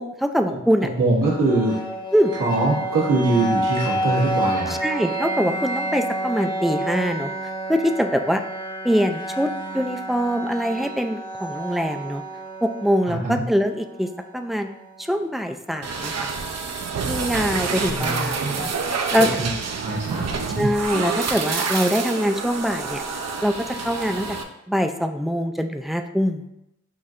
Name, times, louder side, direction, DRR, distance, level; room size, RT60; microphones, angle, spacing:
voice 1, 0.0-0.9 2.1-2.3 4.7-8.4 8.8-9.5 9.7-12.2 12.6-14.7 15.0-16.3 17.0-18.7 19.1-19.3 20.6-23.0 23.4-24.4 24.7-26.4, equal, ahead, 6 dB, 0.3 m, -23 dB
voice 2, 1.0-1.7 2.4-4.8 13.1-13.4 17.9-18.6 19.2-19.5 19.8-20.7, right 2 dB, 90° right, -5 dB, 1.2 m, -23 dB
sound 1, 1.2-15.1, right 1 dB, 15° left, 0.7 m, -30 dB
sound 2, 15.8-24.4, right 5 dB, 55° right, 0.5 m, -28 dB
6.0 x 2.6 x 2.5 m, 0.87 s
cardioid pair, 45°, 31 cm